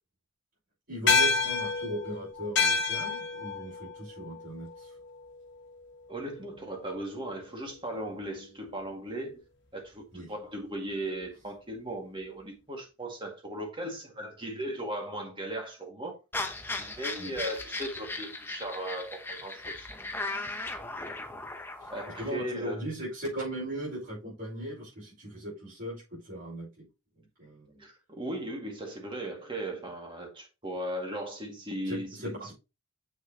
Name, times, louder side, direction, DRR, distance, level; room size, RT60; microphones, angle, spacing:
voice 1, 0.9-5.0 10.1-10.3 17.2-17.3 21.8-21.9 22.2-26.9 27.4-27.8 31.9-32.5, equal, 55° right, 4.8 m, -38 dB
sound 1, 1.1-5.7, left 4 dB, 50° left, 1.5 m, -29 dB
voice 2, 6.1-9.4 9.7-16.2 16.8-19.9 21.9-22.8 27.8-32.5, right 1 dB, 20° right, 2.0 m, -37 dB
sound 2, 16.3-22.3, left 2 dB, 10° left, 0.7 m, -37 dB
7.7 x 6.1 x 2.9 m
head